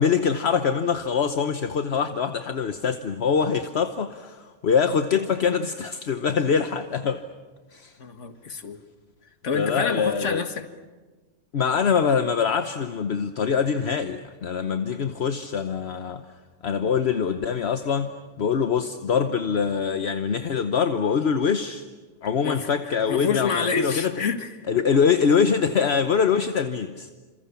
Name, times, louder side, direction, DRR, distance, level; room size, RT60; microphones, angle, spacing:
voice 1, 0.0-7.2 7.7-7.9 9.5-10.5 11.5-16.2 16.6-18.1 18.4-21.8 22.2-24.1 24.7-27.1, left 6 dB, 60° left, 8 dB, 1.2 m, -24 dB
voice 2, 8.0-8.8 9.4-10.6 22.4-24.5 24.8-24.9, left 5 dB, 80° left, 8 dB, 2.0 m, -28 dB
29.5 x 27.0 x 7.1 m, 1.3 s
omnidirectional pair, 1.2 m